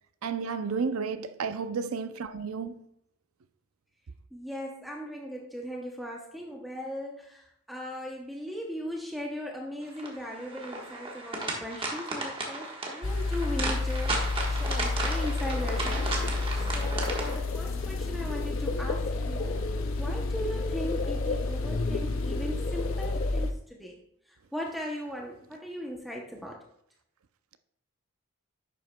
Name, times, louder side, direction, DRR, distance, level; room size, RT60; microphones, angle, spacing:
voice 1, 0.2-2.8, right 5 dB, 75° right, 0.5 m, -32 dB
voice 2, 4.3-16.2 16.5-19.6 20.0-24.0 24.3-26.7, equal, ahead, 0.7 m, -38 dB
sound 1, 10.0-17.4, right 2 dB, 25° right, 1.3 m, -34 dB
sound 2, 13.0-23.5, left 3 dB, 65° left, 0.8 m, -31 dB
sound 3, 15.2-23.5, left 3 dB, 40° left, 0.4 m, -36 dB
10.5 x 7.6 x 2.2 m
head